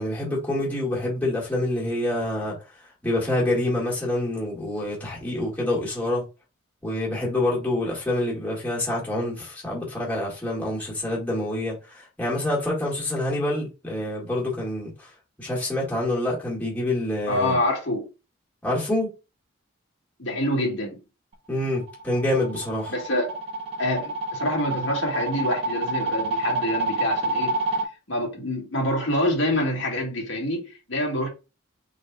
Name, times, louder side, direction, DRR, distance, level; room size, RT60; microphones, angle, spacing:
voice 1, 0.0-2.6 3.0-6.2 6.8-14.9 15.4-17.6 18.6-19.1 21.5-22.9, left 1 dB, 10° left, 1.8 m, -26 dB
voice 2, 17.3-18.1 20.2-21.0 22.9-23.4 23.8-27.6 28.1-31.3, left 1 dB, 70° left, 1.8 m, -26 dB
sound 1, 21.7-27.9, right 2 dB, 30° right, 1.1 m, -28 dB
4.8 x 4.1 x 2.3 m
head